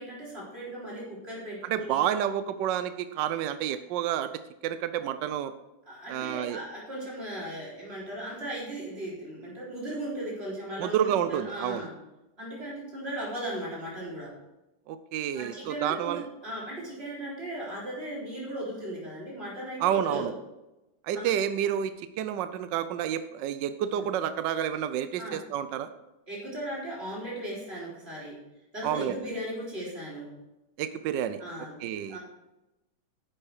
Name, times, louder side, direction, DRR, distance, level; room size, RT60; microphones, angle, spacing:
voice 1, 0.0-2.1 5.9-11.9 12.4-14.3 15.3-20.3 21.1-21.3 23.9-24.1 25.2-25.4 26.3-28.4 28.7-30.3 31.4-32.2, right 1 dB, 30° right, -5 dB, 4.3 m, -37 dB
voice 2, 1.6-5.5 6.1-6.6 10.8-11.9 14.9-16.3 19.8-20.3 21.0-25.9 28.8-29.2 30.8-31.4 31.8-32.2, right 10 dB, 70° right, 11 dB, 1.2 m, -29 dB
10.5 x 7.6 x 4.8 m, 1.0 s
omnidirectional pair, 2.2 m